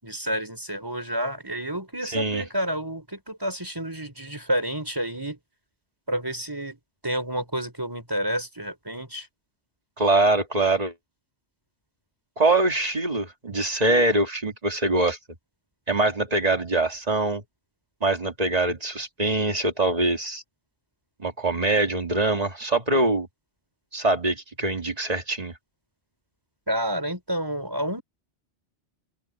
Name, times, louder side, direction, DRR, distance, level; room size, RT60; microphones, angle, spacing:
voice 1, 0.0-5.4 6.1-6.8 7.0-9.3 26.7-28.0, equal, 20° right, 5.3 m, -29 dB
voice 2, 2.1-2.4 10.0-10.9 12.4-15.2 15.9-17.4 18.0-20.4 21.2-23.3 23.9-25.5, right 2 dB, 35° right, 2.1 m, -23 dB
open air
omnidirectional pair, 1.1 m